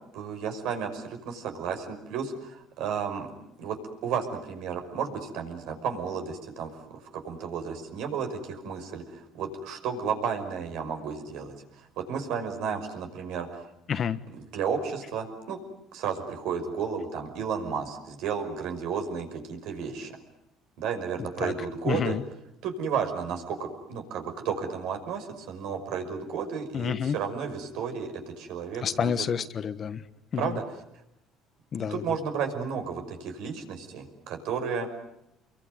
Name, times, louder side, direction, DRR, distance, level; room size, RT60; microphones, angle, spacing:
voice 1, 0.1-3.3 3.6-3.8 4.0-13.7 14.3-15.6 15.9-20.2 20.8-22.2 22.6-29.3 30.4-30.8 31.8-34.9, right 6 dB, 75° right, 5 dB, 5.7 m, -33 dB
voice 2, 13.9-14.2 21.4-21.5 21.9-22.2 26.7-27.2 28.8-30.0 30.3-30.6 31.7-32.0, left 7 dB, 45° left, 12 dB, 1.3 m, -29 dB
27.0 x 23.0 x 9.5 m, 0.82 s
cardioid pair, 110°, 0 cm